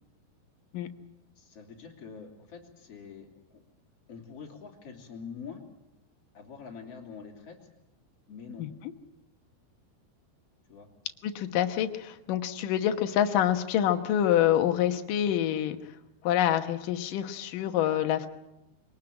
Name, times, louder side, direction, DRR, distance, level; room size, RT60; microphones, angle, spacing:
voice 1, 1.4-3.6 4.1-5.6 6.3-7.6 8.3-8.7 10.7-10.9, left 6 dB, 35° left, 1 dB, 3.7 m, -45 dB
voice 2, 11.2-15.8 16.2-18.3, left 11 dB, 65° left, 7 dB, 2.3 m, -26 dB
23.5 x 19.0 x 8.7 m, 0.94 s
omnidirectional pair, 4.9 m